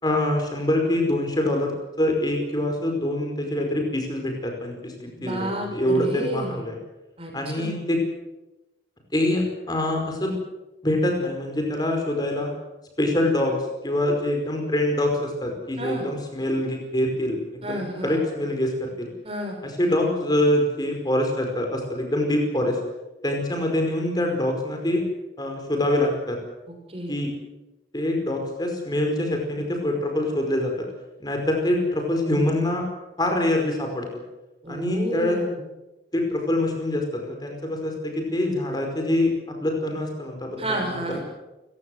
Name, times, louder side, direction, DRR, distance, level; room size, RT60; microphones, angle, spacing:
voice 1, 0.0-1.7 2.0-6.8 7.3-8.0 9.1-10.4 10.8-12.5 13.0-13.6 13.8-19.1 19.8-22.8 23.2-25.0 25.4-26.4 27.1-27.3 27.9-30.7 31.2-32.9 33.2-34.1 34.7-35.4 36.1-40.8 41.1-41.2, left 1 dB, 25° left, 3 dB, 5.0 m, -25 dB
voice 2, 5.1-6.6 7.2-7.8 15.8-16.1 17.6-18.2 19.2-19.6 26.7-27.2 34.6-35.6 40.6-41.2, right 1 dB, 35° right, 2 dB, 6.3 m, -31 dB
29.5 x 16.0 x 7.9 m, 1.0 s
head